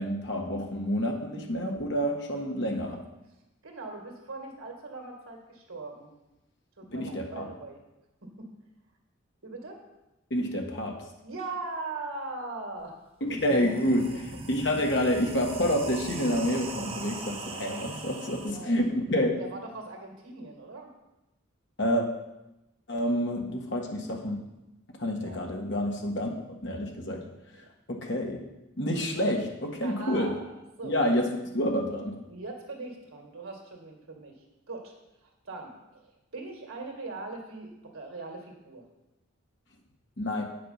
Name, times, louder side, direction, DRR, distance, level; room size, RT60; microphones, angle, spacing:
voice 1, 0.0-3.0 6.9-7.5 10.3-11.0 13.2-19.4 21.8-22.1 22.9-24.4 25.0-26.3 26.6-27.2 27.9-28.4 28.8-30.3 30.8-31.3 31.5-32.2 40.2-40.4, equal, 55° left, 1 dB, 1.6 m, -28 dB
voice 2, 3.6-6.1 6.8-7.8 8.2-8.5 9.4-9.8 11.2-12.9 13.3-13.4 14.1-14.2 18.3-18.8 19.4-20.9 25.1-25.5 27.5-27.7 29.8-31.0 32.3-34.4 34.7-34.9 35.2-36.0 36.3-38.8, right 3 dB, 85° right, 2 dB, 2.0 m, -40 dB
sound 1, 12.8-12.9 13.2-18.5, right 2 dB, 25° right, 0.8 m, -39 dB
8.7 x 6.6 x 5.7 m, 0.97 s
head